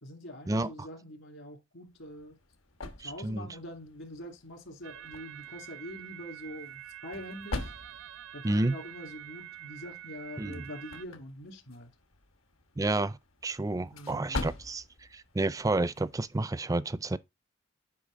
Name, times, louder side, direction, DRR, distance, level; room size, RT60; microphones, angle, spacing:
voice 1, 0.0-2.4 3.0-7.7 8.3-11.9 13.9-14.5, equal, 65° left, 2.3 m, -44 dB
sound 1, 1.9-16.4, left 2 dB, 80° left, 1.4 m, -45 dB
voice 2, 3.0-3.5 8.4-8.7 10.4-10.6 12.8-13.2 13.4-14.8 15.1-17.2, right 2 dB, 15° right, 0.4 m, -30 dB
sound 2, 4.8-11.1, right 11 dB, 75° right, 0.5 m, -46 dB
8.6 x 5.2 x 3.7 m
head